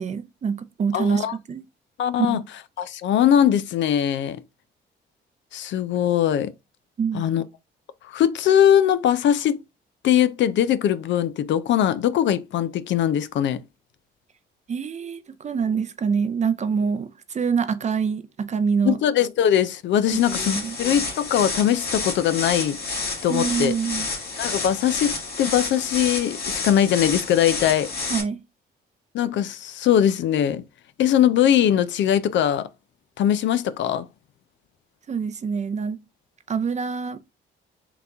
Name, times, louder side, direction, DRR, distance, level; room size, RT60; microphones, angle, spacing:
voice 1, 0.0-1.6 2.2-2.4 7.0-7.3 14.7-19.0 20.1-20.8 23.3-24.1 28.1-28.4 35.1-36.0 36.5-37.2, right 6 dB, 35° right, 0.5 m, -25 dB
voice 2, 0.9-1.3 2.0-2.4 2.8-4.4 5.5-6.5 7.1-7.4 8.0-9.6 10.0-13.6 18.8-22.8 23.2-23.7 24.4-27.9 29.1-30.6 31.0-32.7 33.2-34.1, left 10 dB, 70° left, 0.4 m, -21 dB
sound 1, 20.1-28.2, left 3 dB, 50° left, 1.9 m, -30 dB
3.9 x 2.9 x 3.4 m
cardioid pair, 90°, 20 cm